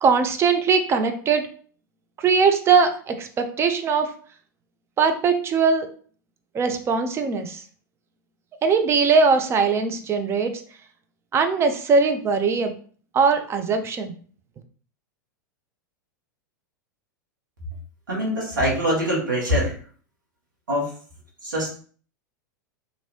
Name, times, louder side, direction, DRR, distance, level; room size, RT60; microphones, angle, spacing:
voice 1, 0.0-1.4 2.2-4.1 5.0-5.9 6.5-7.6 8.6-10.5 11.3-12.7 13.1-14.1, right 5 dB, 25° right, 7 dB, 0.6 m, -20 dB
voice 2, 18.1-19.8 20.7-20.9 21.4-21.7, equal, 80° right, -4 dB, 1.3 m, -23 dB
3.0 x 2.7 x 2.8 m, 0.43 s
figure-of-eight pair, 95°, 10 cm